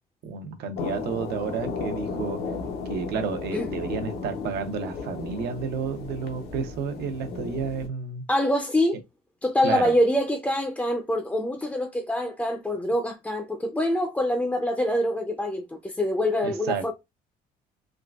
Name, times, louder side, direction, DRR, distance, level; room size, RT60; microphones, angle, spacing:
voice 1, 0.2-2.4 2.9-8.2 9.6-9.9 16.4-16.8, right 5 dB, 75° right, 0.7 m, -31 dB
sound 1, 0.8-7.9, left 4 dB, 80° left, 0.8 m, -34 dB
voice 2, 8.3-9.0 9.4-16.9, left 1 dB, 10° left, 0.4 m, -25 dB
3.6 x 2.3 x 2.3 m
cardioid pair, 110°, 17 cm